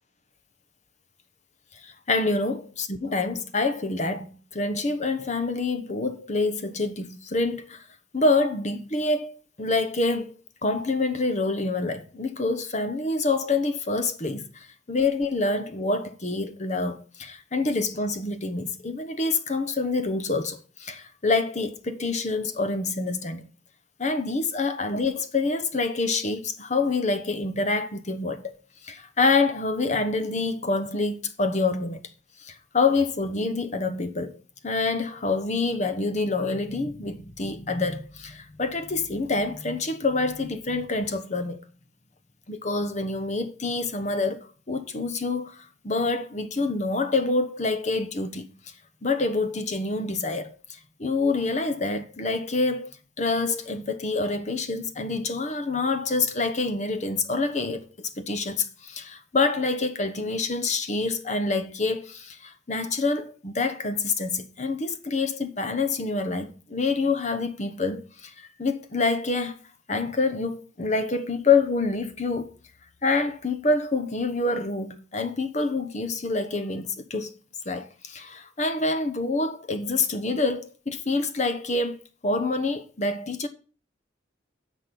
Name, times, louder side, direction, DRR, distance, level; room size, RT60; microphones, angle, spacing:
voice 1, 1.7-7.8 8.1-10.3 10.6-23.5 24.0-28.5 28.8-32.0 32.4-34.4 34.6-41.6 42.5-48.5 49.0-52.9 53.2-69.6 69.9-72.5 73.0-77.3 77.6-83.5, left 3 dB, 40° left, 1.0 m, -27 dB
10.5 x 6.2 x 5.3 m
head